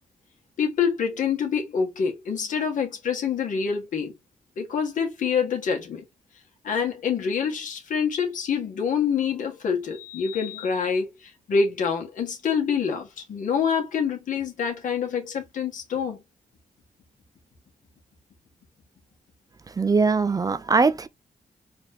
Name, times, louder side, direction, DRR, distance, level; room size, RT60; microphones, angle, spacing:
voice 1, 0.6-4.1 4.6-6.1 6.6-16.2, left 6 dB, 75° left, 1.8 m, -26 dB
voice 2, 19.7-21.1, right 4 dB, 25° right, 0.5 m, -21 dB
4.3 x 2.9 x 3.6 m
cardioid pair, 105°, 13 cm